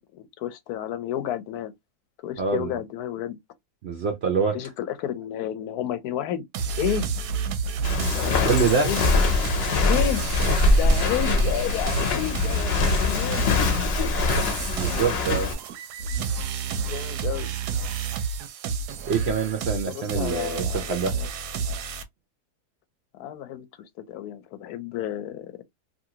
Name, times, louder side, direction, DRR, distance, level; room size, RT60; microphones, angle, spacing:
voice 1, 0.1-1.7 2.2-3.4 4.5-6.4 6.7-7.1 8.1-9.0 9.8-10.2 10.7-14.5 16.7-17.5 19.9-21.3 23.2-23.7 24.1-25.5, left 11 dB, 80° left, 1.1 m, -31 dB
voice 2, 2.4-2.7 3.8-4.6 8.0-8.9 14.7-15.5 19.0-21.1, right 5 dB, 70° right, 0.6 m, -25 dB
sound 1, 6.5-22.0, right 4 dB, 90° right, 1.2 m, -30 dB
Walk footsteps, 7.8-15.5, left 3 dB, 50° left, 0.8 m, -23 dB
2.8 x 2.6 x 2.7 m
omnidirectional pair, 1.7 m